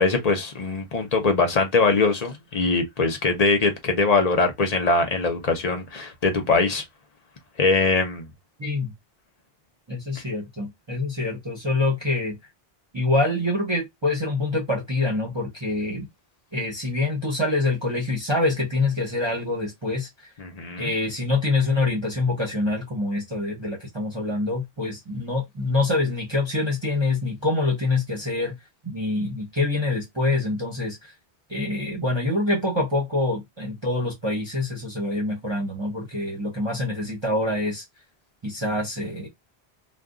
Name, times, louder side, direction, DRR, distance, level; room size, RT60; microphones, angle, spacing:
voice 1, 0.0-6.8 7.6-8.3 20.4-20.9, left 3 dB, 40° left, 0.8 m, -22 dB
voice 2, 8.6-8.9 9.9-12.4 12.9-16.1 16.5-20.3 20.8-28.6 28.8-31.1 31.5-37.8 38.4-39.3, left 2 dB, 30° right, 0.8 m, -25 dB
2.5 x 2.3 x 3.5 m
omnidirectional pair, 1.1 m